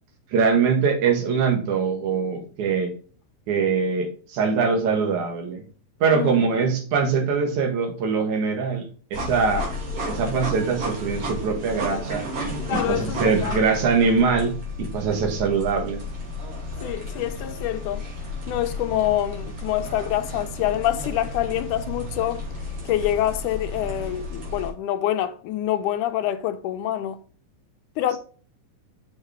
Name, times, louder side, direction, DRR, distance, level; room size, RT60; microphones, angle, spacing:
voice 1, 0.3-2.9 3.5-5.6 6.0-8.8 9.1-9.7 10.1-12.3 12.7-16.0, right 5 dB, 70° right, 3.0 m, -22 dB
voice 2, 6.1-6.5 12.7-13.6 16.8-18.1 18.5-22.4 22.9-27.2 28.0-28.2, left 12 dB, 85° left, 2.1 m, -26 dB
sound 1, 9.1-24.7, left 1 dB, 50° right, 3.5 m, -33 dB
6.6 x 6.5 x 3.4 m
omnidirectional pair, 3.6 m